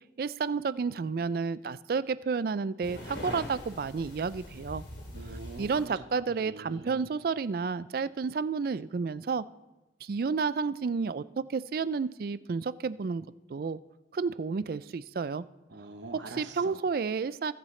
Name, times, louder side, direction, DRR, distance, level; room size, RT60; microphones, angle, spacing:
voice 1, 0.2-4.8 5.6-9.4 10.0-13.8 14.1-15.4 16.3-17.5, right 5 dB, 50° right, 16 dB, 0.3 m, -31 dB
sound 1, 2.8-5.9, left 1 dB, 85° left, 2.7 m, -42 dB
voice 2, 5.1-6.0 6.4-7.1 15.7-16.8, right 2 dB, 80° right, 5 dB, 0.9 m, -44 dB
20.0 x 7.6 x 3.2 m, 1.1 s
head